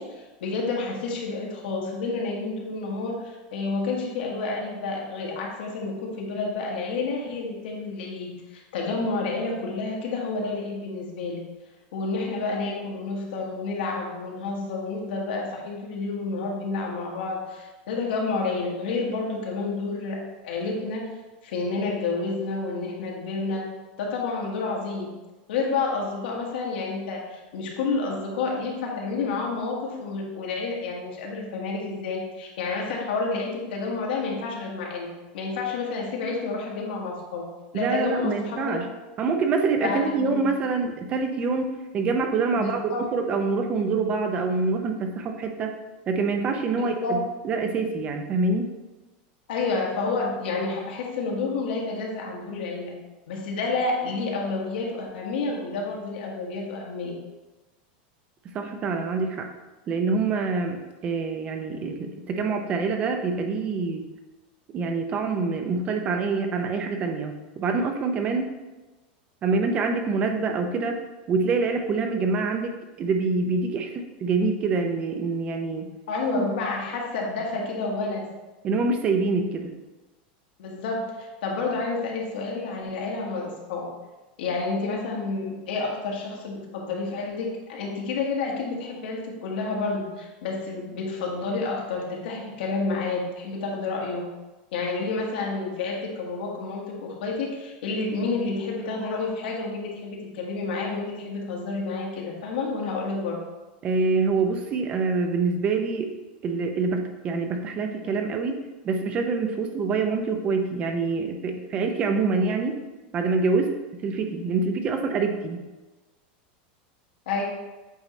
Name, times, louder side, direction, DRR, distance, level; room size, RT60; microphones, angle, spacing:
voice 1, 0.0-11.4 11.9-21.0 21.4-23.7 24.0-25.1 25.5-37.4 37.7-38.8 39.8-40.5 42.5-43.1 46.7-47.2 49.5-52.9 53.3-57.1 76.1-78.3 80.6-83.9 84.4-94.3 94.7-103.4 117.2-117.4, left 3 dB, 80° left, -1 dB, 1.6 m, -29 dB
voice 2, 37.7-38.8 39.2-45.7 46.1-47.2 47.4-48.7 58.5-59.5 59.9-64.1 64.7-68.5 69.4-71.0 71.3-75.9 76.3-76.4 78.6-79.7 103.8-106.1 106.4-108.6 108.8-112.8 113.1-115.6, right 4 dB, 25° right, 5 dB, 0.5 m, -26 dB
8.2 x 4.0 x 3.1 m, 1.2 s
supercardioid pair, 170°, 5 cm